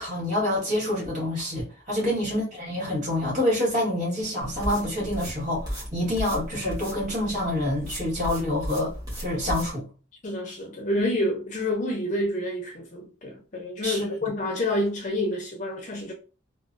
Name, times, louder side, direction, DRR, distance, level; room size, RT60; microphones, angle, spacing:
voice 1, 0.0-9.8 13.8-14.1, left 1 dB, 35° right, 1.5 m, -27 dB
sound 1, 4.4-9.7, equal, 20° right, 1.2 m, -36 dB
voice 2, 10.2-16.1, left 1 dB, 35° left, 0.5 m, -28 dB
3.0 x 2.0 x 2.5 m
head